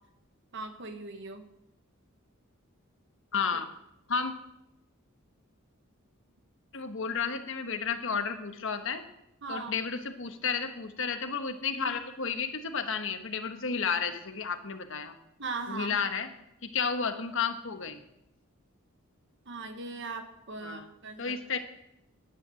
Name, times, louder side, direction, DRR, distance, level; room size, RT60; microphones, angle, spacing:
voice 1, 0.5-1.4 9.4-9.8 15.4-16.0 19.5-21.3, right 3 dB, 60° right, 7 dB, 1.5 m, -39 dB
voice 2, 3.3-3.7 4.1-4.3 6.7-9.0 9.5-15.2 15.7-16.3 16.6-18.0 20.6-20.9 21.2-21.6, left 5 dB, 65° left, 8 dB, 1.3 m, -32 dB
10.5 x 9.9 x 7.8 m, 0.84 s
head